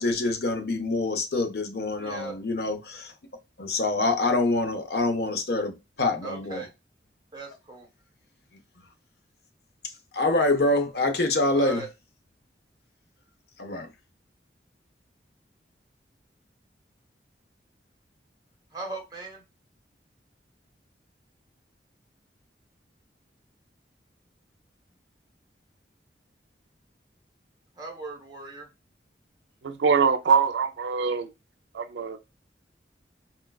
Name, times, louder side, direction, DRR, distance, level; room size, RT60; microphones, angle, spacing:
voice 1, 0.0-3.1 3.6-6.6 10.1-11.8 13.6-13.9, left 2 dB, 60° left, 0.6 m, -25 dB
voice 2, 2.0-2.4 6.2-6.7 7.3-7.9 11.5-11.9 18.7-19.4 27.7-28.7, right 3 dB, 25° right, 1.0 m, -38 dB
voice 3, 29.6-31.3 31.7-32.2, right 5 dB, 85° right, 0.4 m, -23 dB
4.3 x 2.3 x 2.2 m
head